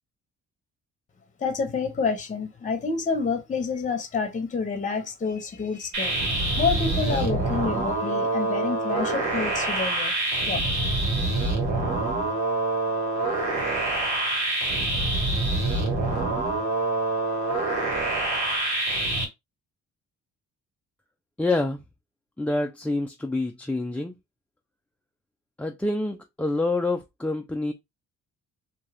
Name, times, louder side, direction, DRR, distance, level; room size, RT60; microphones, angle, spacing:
voice 1, 1.4-6.1 6.6-10.1 10.4-10.6, left 5 dB, 25° left, 0.8 m, -28 dB
sound 1, 5.9-19.2, right 2 dB, 75° right, 1.7 m, -26 dB
voice 2, 21.4-21.8 22.4-24.2 25.6-27.7, left 2 dB, 5° left, 0.3 m, -27 dB
2.7 x 2.3 x 3.3 m
cardioid pair, 90°, 30 cm